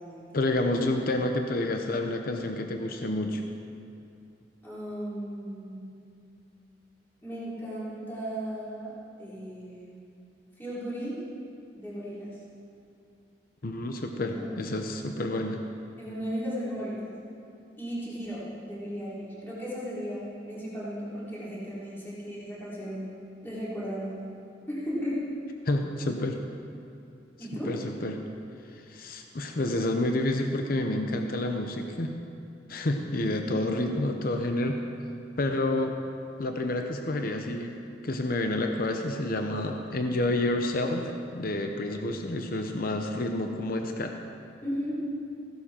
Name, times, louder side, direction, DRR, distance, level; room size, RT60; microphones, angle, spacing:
voice 1, 0.3-3.4 13.6-15.6 25.7-26.4 27.6-28.2 28.7-32.1 32.7-34.8 35.4-36.0 36.4-37.8 38.0-44.2, left 1 dB, 55° left, 4 dB, 0.8 m, -29 dB
voice 2, 4.6-5.9 7.2-10.0 10.6-11.2 11.8-12.4 14.2-14.4 16.0-17.2 17.8-23.2 23.4-24.2 24.7-25.3 27.4-27.7 33.4-33.6 44.6-45.0, equal, 10° left, -10 dB, 3.8 m, -35 dB
15.5 x 11.5 x 4.4 m, 2.6 s
head